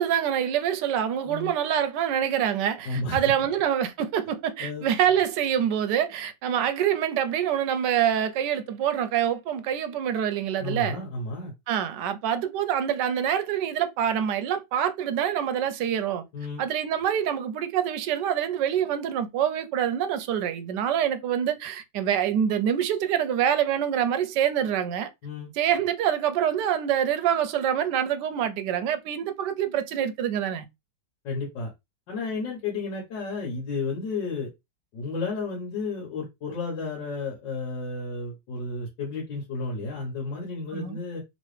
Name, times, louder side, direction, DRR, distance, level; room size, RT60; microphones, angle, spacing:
voice 1, 0.0-11.0 11.7-16.2 16.6-25.1 25.6-30.6 40.7-41.0, right 9 dB, 80° right, 1.2 m, -26 dB
voice 2, 2.9-3.3 4.6-4.9 10.6-11.5 16.3-16.6 25.2-25.5 31.2-31.7 32.1-34.5 34.9-41.2, left 3 dB, 90° left, 1.8 m, -32 dB
3.4 x 3.1 x 3.2 m
omnidirectional pair, 1.9 m